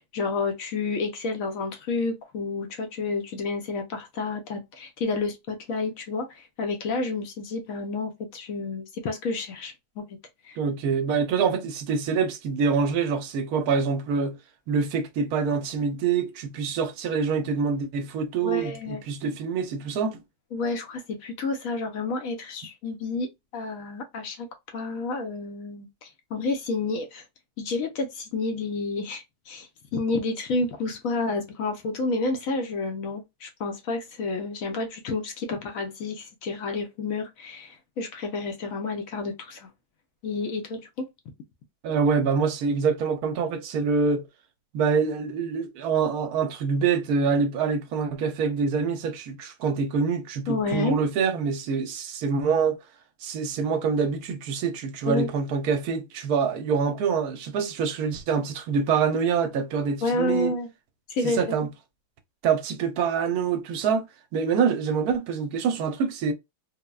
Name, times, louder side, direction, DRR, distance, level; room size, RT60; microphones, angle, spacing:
voice 1, 0.0-10.1 10.4-10.6 18.4-19.0 20.5-23.3 23.5-24.5 24.7-27.2 27.6-39.7 40.2-41.0 50.5-51.0 55.1-55.3 60.0-60.7 61.1-61.6, left 3 dB, 65° left, 0.9 m, -30 dB
voice 2, 10.6-14.4 14.7-20.2 41.8-44.3 44.7-52.8 53.2-60.5 61.2-61.7 62.4-64.0 64.3-66.3, right 5 dB, 75° right, 1.0 m, -25 dB
3.2 x 2.1 x 2.3 m
omnidirectional pair, 1.7 m